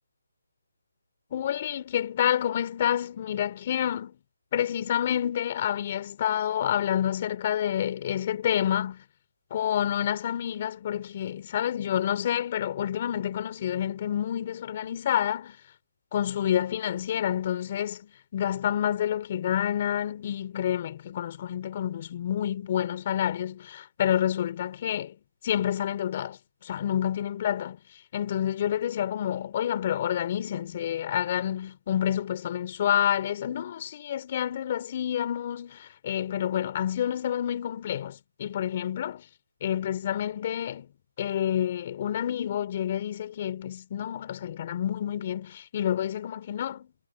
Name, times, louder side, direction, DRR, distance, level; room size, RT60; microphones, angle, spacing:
voice 1, 1.3-4.1 4.5-9.0 9.5-15.6 16.1-25.1 25.4-27.8 28.1-39.2 39.6-40.9 41.2-46.9, left 10 dB, 30° left, 4.1 m, -28 dB
hypercardioid pair, 165°, 0 cm